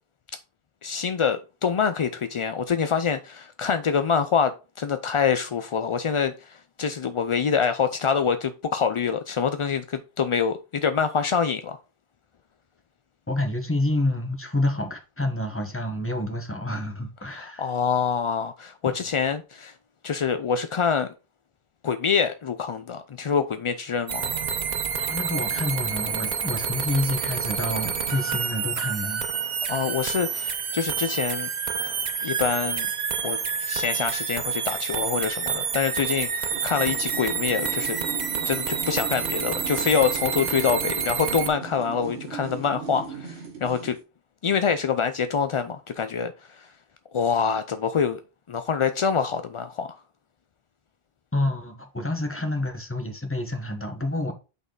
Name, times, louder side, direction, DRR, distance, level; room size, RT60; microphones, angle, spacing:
voice 1, 0.8-11.8 17.3-19.7 20.0-21.1 21.8-24.3 29.7-31.5 31.9-32.0 32.2-32.9 33.2-38.0 38.5-44.0 44.4-46.3 47.1-48.2 48.5-49.9, left 6 dB, 55° left, 0.3 m, -25 dB
voice 2, 13.3-17.7 18.9-19.0 25.0-29.2 51.3-54.3, left 1 dB, 15° left, 1.2 m, -28 dB
sound 1, 24.1-41.5, right 6 dB, 50° right, 0.8 m, -28 dB
sound 2, 36.5-44.0, right 5 dB, 85° right, 1.5 m, -38 dB
6.0 x 5.4 x 3.9 m
omnidirectional pair, 1.0 m